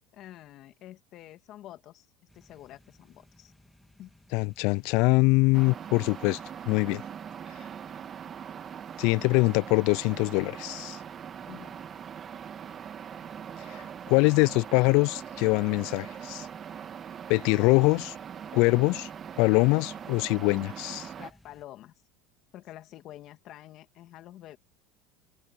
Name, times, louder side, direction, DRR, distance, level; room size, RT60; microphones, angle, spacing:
voice 1, 0.0-2.1 2.3-3.5 4.0-4.1 11.5-11.7 21.2-21.9 22.5-24.6, left 13 dB, 50° left, 2.1 m, -47 dB
sound 1, 2.3-21.7, left 1 dB, 5° left, 1.9 m, -60 dB
voice 2, 4.3-6.4 6.7-7.0 9.0-11.0 13.7-16.5 17.3-18.1 18.5-19.1 19.4-21.1, left 27 dB, 65° left, 0.3 m, -23 dB
sound 2, 5.5-21.3, right 8 dB, 35° right, 2.1 m, -41 dB
supercardioid pair, 110°, 0 cm